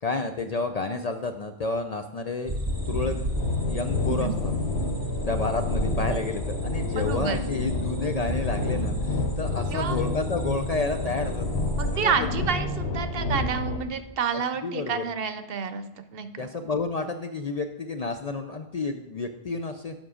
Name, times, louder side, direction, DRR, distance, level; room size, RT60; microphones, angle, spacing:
voice 1, 0.0-2.6 2.9-3.1 3.7-4.5 5.3-11.6 11.9-12.3 14.6-15.0 16.4-19.9, left 3 dB, 55° left, 7 dB, 0.5 m, -30 dB
sound 1, 2.5-12.0, right 1 dB, 20° right, 0.8 m, -37 dB
sound 2, 2.7-13.8, left 2 dB, 80° left, 1.1 m, -29 dB
voice 2, 7.0-7.4 9.7-10.0 11.8-15.8 16.1-16.5, right 6 dB, 65° right, 10 dB, 0.8 m, -29 dB
7.3 x 5.9 x 4.9 m, 0.97 s
omnidirectional pair, 1.1 m